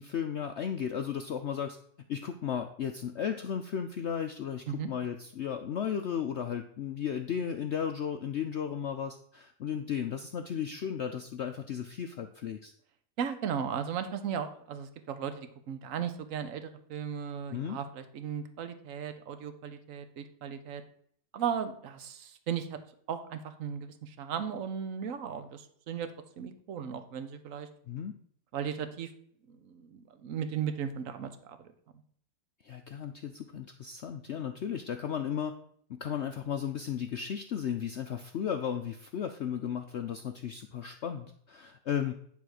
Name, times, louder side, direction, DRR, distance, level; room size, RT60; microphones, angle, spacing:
voice 1, 0.0-1.8 2.1-12.7 17.5-17.8 27.9-28.2 32.6-35.5 35.9-42.2, left 8 dB, 80° left, 6 dB, 0.6 m, -35 dB
voice 2, 13.2-20.8 21.3-22.8 23.1-26.1 26.4-27.7 28.5-29.1 29.5-31.7, right 8 dB, 55° right, 9 dB, 1.1 m, -36 dB
10.0 x 3.7 x 6.4 m, 0.63 s
omnidirectional pair, 1.9 m